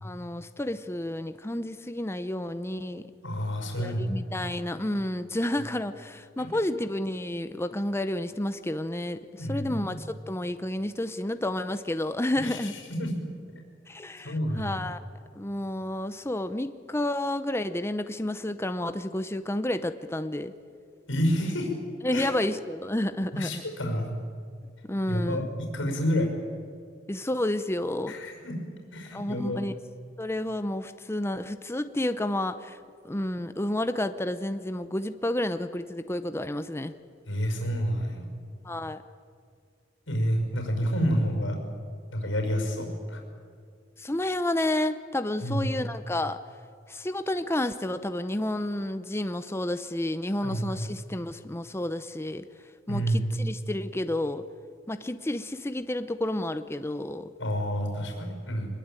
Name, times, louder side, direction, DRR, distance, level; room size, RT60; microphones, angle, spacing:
voice 1, 0.0-3.0 3.8-12.7 13.9-15.0 15.4-20.5 22.0-23.6 24.9-25.5 27.1-28.2 29.1-29.8 30.2-32.8 33.0-36.9 38.6-39.0 44.0-46.4 46.9-52.4 52.9-54.4 54.9-57.3, left 1 dB, 15° left, 10 dB, 0.7 m, -30 dB
voice 2, 3.2-4.2 6.4-6.5 9.4-10.0 12.4-12.7 13.0-13.1 14.2-14.8 21.1-21.7 22.1-22.3 23.3-24.1 25.1-25.4 25.7-26.3 28.1-28.6 28.9-29.6 37.3-38.3 40.1-41.6 42.1-43.2 45.4-45.7 50.4-50.9 52.9-53.4 57.4-58.7, equal, 75° left, 3 dB, 5.8 m, -29 dB
24.0 x 21.0 x 9.1 m, 2.1 s
head